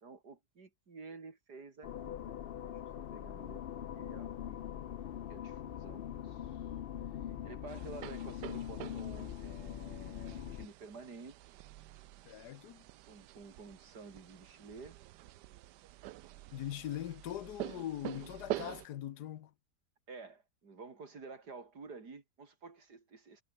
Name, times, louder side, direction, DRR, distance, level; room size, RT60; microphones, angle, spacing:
voice 1, 0.0-4.6 5.3-6.6 7.4-11.3 13.1-15.0 20.1-23.4, right 4 dB, 75° right, 3.6 m, -51 dB
sound 1, 1.8-10.7, left 10 dB, 90° left, 0.5 m, -42 dB
sound 2, 7.7-18.9, right 14 dB, 90° right, 1.3 m, -46 dB
voice 2, 12.2-12.8 16.5-19.5, left 12 dB, 75° left, 1.4 m, -41 dB
omnidirectional pair, 1.8 m